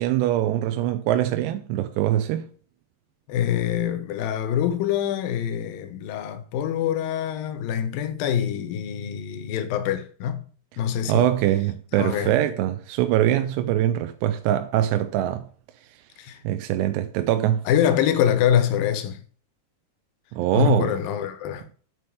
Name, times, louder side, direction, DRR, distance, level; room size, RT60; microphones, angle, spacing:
voice 1, 0.0-2.5 11.1-15.5 16.4-17.6 20.3-21.0, right 12 dB, 90° right, 2.8 m, -23 dB
voice 2, 3.3-10.4 10.8-11.3 11.9-12.3 16.2-16.4 17.7-19.2 20.5-21.7, left 10 dB, 70° left, 2.5 m, -25 dB
9.3 x 4.7 x 4.7 m
omnidirectional pair, 4.7 m